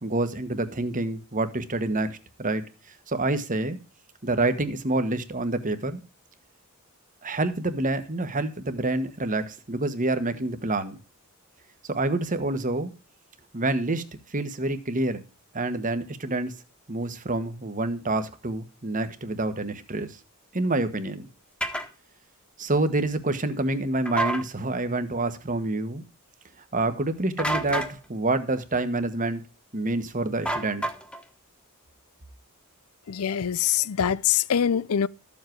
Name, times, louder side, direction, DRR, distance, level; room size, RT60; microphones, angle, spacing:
voice 1, 0.0-2.7 3.1-3.8 4.2-6.0 7.2-11.0 11.9-12.9 13.5-14.0 14.3-15.2 15.5-16.5 16.9-20.2 20.5-21.3 22.6-26.0 26.7-29.4 29.7-30.8, right 2 dB, 35° right, 1.4 m, -27 dB
sound 1, 21.6-21.9 24.1-24.4 27.4-27.9 30.5-31.2, right 1 dB, 5° left, 1.5 m, -28 dB
voice 2, 33.1-35.1, left 9 dB, 75° left, 0.5 m, -24 dB
13.5 x 7.5 x 4.5 m
head